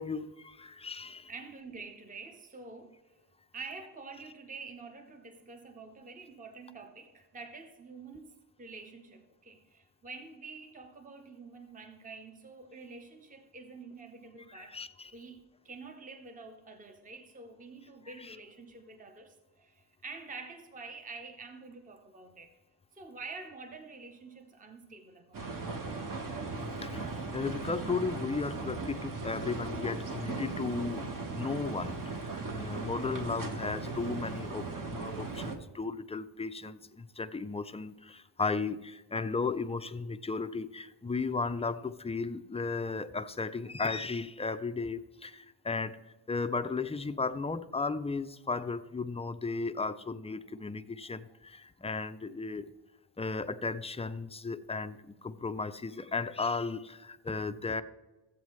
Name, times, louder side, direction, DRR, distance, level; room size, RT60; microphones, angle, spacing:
voice 1, 0.0-1.3 14.5-15.1 18.2-18.4 26.6-46.0 46.3-52.7 53.2-57.8, left 4 dB, 15° left, 0.3 m, -35 dB
voice 2, 1.3-3.0 3.5-14.8 15.1-22.5 22.9-25.7, right 4 dB, 20° right, 0.7 m, -47 dB
sound 1, 25.3-35.6, right 3 dB, 50° right, 1.1 m, -38 dB
14.5 x 8.2 x 3.1 m
wide cardioid pair, 125°, 42 cm